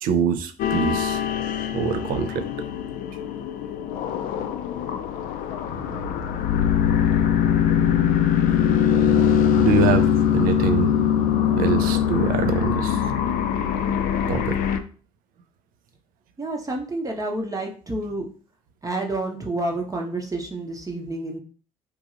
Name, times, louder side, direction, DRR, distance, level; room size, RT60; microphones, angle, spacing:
voice 1, 0.0-1.2 1.7-2.5 9.6-10.9 11.6-13.0 14.3-14.8, right 6 dB, 60° right, 9 dB, 0.4 m, -24 dB
sound 1, 0.6-14.8, left 9 dB, 60° left, 0.4 m, -22 dB
sound 2, 5.7-12.0, right 1 dB, 85° right, 0.8 m, -39 dB
voice 2, 16.4-18.3 18.8-21.4, right 2 dB, 20° right, 1 dB, 0.7 m, -29 dB
3.1 x 2.6 x 2.5 m, 0.38 s
hypercardioid pair, 55°, 17 cm